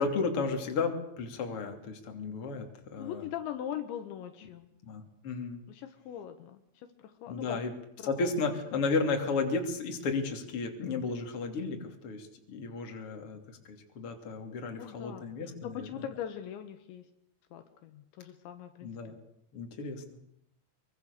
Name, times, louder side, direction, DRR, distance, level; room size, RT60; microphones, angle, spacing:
voice 1, 0.0-3.3 4.8-5.6 7.3-7.7 8.0-16.1 18.8-19.2 19.5-20.0, left 4 dB, 35° left, 3 dB, 3.2 m, -33 dB
voice 2, 3.0-4.7 5.7-7.6 8.0-8.3 14.8-17.1 17.5-19.2, left 10 dB, 75° left, 8 dB, 3.5 m, -41 dB
24.5 x 23.5 x 6.7 m, 0.74 s
omnidirectional pair, 5.5 m